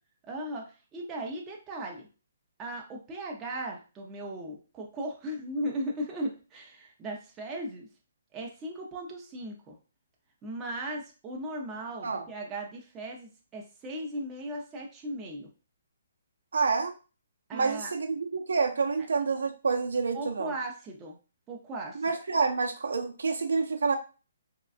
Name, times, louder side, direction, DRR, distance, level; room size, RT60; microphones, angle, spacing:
voice 1, 0.2-2.1 2.6-7.9 8.3-9.8 10.4-15.5 17.5-17.9 20.1-21.2 21.5-22.1, right 1 dB, 15° right, -1 dB, 0.6 m, -37 dB
voice 2, 16.5-16.9 17.5-20.5 21.9-24.0, right 4 dB, 85° right, 4 dB, 0.6 m, -28 dB
3.6 x 2.2 x 2.4 m, 0.33 s
hypercardioid pair, 165°, 0 cm